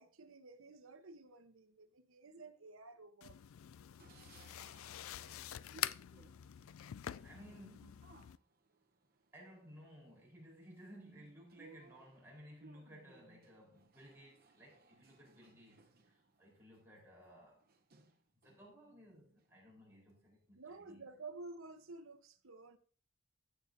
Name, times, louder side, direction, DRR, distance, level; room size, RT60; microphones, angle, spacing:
voice 1, 0.0-3.4 20.6-22.8, right 3 dB, 75° right, 0.9 m, -52 dB
sound 1, 3.2-8.4, left 12 dB, 75° left, 0.3 m, -46 dB
sound 2, 4.0-18.8 19.2-20.2 20.7-20.8 21.1-21.9, right 3 dB, 45° right, 0.9 m, -65 dB
voice 2, 7.2-8.2 9.3-17.6 18.4-21.1, equal, 10° right, 4.1 m, -58 dB
16.5 x 6.6 x 2.7 m
head